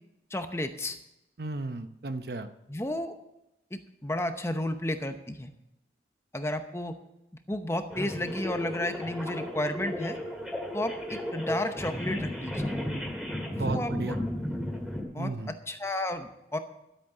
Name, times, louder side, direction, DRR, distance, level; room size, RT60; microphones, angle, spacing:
voice 1, 0.3-1.0 2.7-3.1 3.7-5.5 6.3-6.9 7.5-10.2 10.7-12.7 13.5-13.9 15.1-15.3 15.7-16.6, left 1 dB, 15° left, 7 dB, 0.8 m, -32 dB
voice 2, 1.4-2.5 13.6-14.2 15.2-15.5, right 2 dB, 60° right, 9 dB, 0.8 m, -34 dB
sound 1, 7.9-15.0, left 1 dB, 5° right, 2.3 m, -34 dB
12.5 x 8.6 x 6.6 m, 0.88 s
head